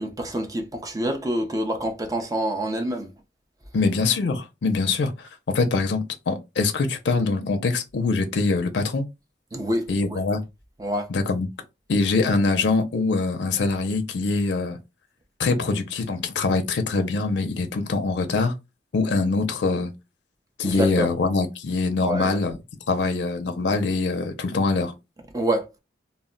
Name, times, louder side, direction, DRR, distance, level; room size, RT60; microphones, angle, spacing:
voice 1, 0.0-3.1 9.5-10.2 10.8-11.1 20.6-21.1 22.0-22.4 25.3-25.7, right 1 dB, 20° right, 0.5 m, -27 dB
voice 2, 3.7-9.1 9.9-10.4 11.1-11.5 11.9-14.8 15.4-18.5 18.9-19.9 20.6-22.5 22.9-24.9, left 3 dB, 70° left, 0.4 m, -23 dB
2.1 x 2.1 x 3.6 m
head